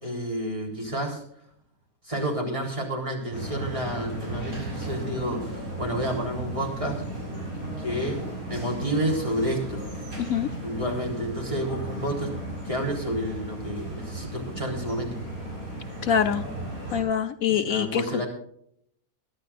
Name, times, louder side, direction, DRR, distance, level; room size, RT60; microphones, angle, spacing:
voice 1, 0.0-1.2 2.0-7.0 7.8-9.8 10.6-12.3 12.6-15.2 17.5-18.3, equal, 20° right, 0 dB, 4.0 m, -30 dB
sound 1, 3.3-17.0, right 1 dB, 75° right, 6.5 m, -35 dB
voice 2, 10.2-10.5 16.0-16.4 16.9-18.2, left 8 dB, 70° left, 8 dB, 1.1 m, -24 dB
22.5 x 11.5 x 2.5 m, 0.70 s
omnidirectional pair, 1.6 m